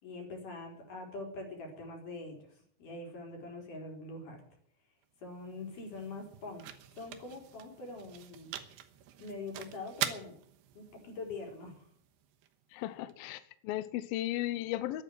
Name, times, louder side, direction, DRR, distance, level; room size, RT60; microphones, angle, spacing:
voice 1, 0.0-2.4 2.8-4.4 5.2-6.6 7.0-8.5 9.2-10.3 10.8-11.9, left 2 dB, 50° left, 5.3 m, -43 dB
sound 1, 5.0-13.1, right 11 dB, 90° right, 3.2 m, -44 dB
voice 2, 12.7-15.0, left 14 dB, 75° left, 2.4 m, -35 dB
13.5 x 11.0 x 7.9 m
omnidirectional pair, 4.7 m